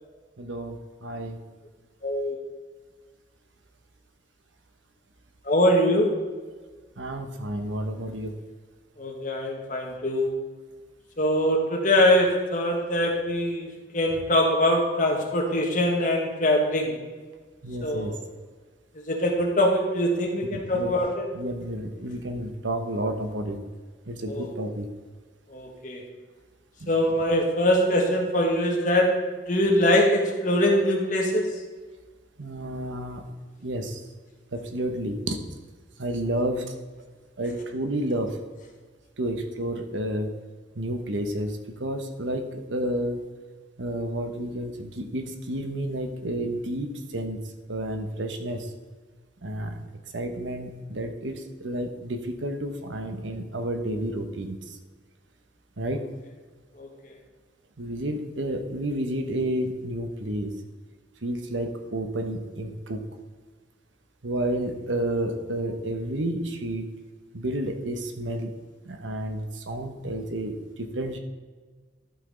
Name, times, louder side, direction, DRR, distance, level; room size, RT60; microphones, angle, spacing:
voice 1, 0.4-1.4 7.0-8.3 17.6-18.1 20.5-21.0 21.3-23.6 24.1-24.9 26.8-26.9 32.4-33.3 33.6-34.0 34.5-35.4 36.0-36.7 37.4-38.4 39.2-40.3 40.7-43.2 43.8-47.4 47.7-48.7 49.4-49.8 50.1-54.8 55.8-56.1 57.8-60.5 61.2-63.1 64.2-66.9 67.3-68.5 68.8-71.2, right 1 dB, 90° right, 5 dB, 1.1 m, -30 dB
voice 2, 2.0-2.4 5.4-6.1 9.0-10.3 11.2-17.0 17.8-18.2 19.1-21.2 24.3-24.5 25.5-26.0 26.9-31.5 56.8-56.9, left 1 dB, 45° left, 1 dB, 1.6 m, -23 dB
12.0 x 5.9 x 3.9 m, 1.4 s
head